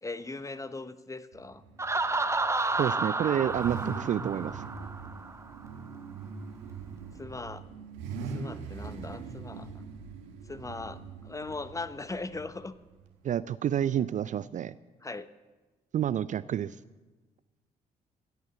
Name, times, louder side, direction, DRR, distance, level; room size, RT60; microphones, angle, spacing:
voice 1, 0.0-1.6 7.1-7.6 8.3-9.8 10.4-12.7 15.0-15.3, left 3 dB, 15° left, 14 dB, 0.9 m, -39 dB
Car / Idling / Accelerating revving vroom, 1.3-13.4, right 5 dB, 70° right, 1.3 m, -42 dB
Laughter, 1.8-5.5, right 3 dB, 15° right, 0.9 m, -31 dB
voice 2, 2.7-4.6 13.2-14.8 15.9-16.8, right 10 dB, 40° right, 17 dB, 0.4 m, -29 dB
16.0 x 9.4 x 7.0 m, 1.2 s
figure-of-eight pair, 45°, 19 cm